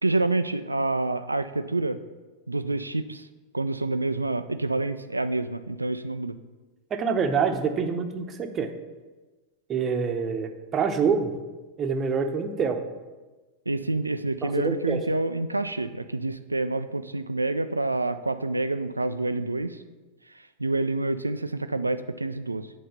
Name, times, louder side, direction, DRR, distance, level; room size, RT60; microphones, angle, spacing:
voice 1, 0.0-2.0 2.5-3.3 3.5-6.4 13.7-19.8 20.3-22.7, right 2 dB, 85° right, 11 dB, 0.3 m, -28 dB
voice 2, 6.9-8.7 9.7-11.3 11.8-12.8 14.4-15.0, right 6 dB, 25° right, 6 dB, 0.8 m, -26 dB
7.7 x 4.2 x 6.7 m, 1.2 s
figure-of-eight pair, 90°, 0 cm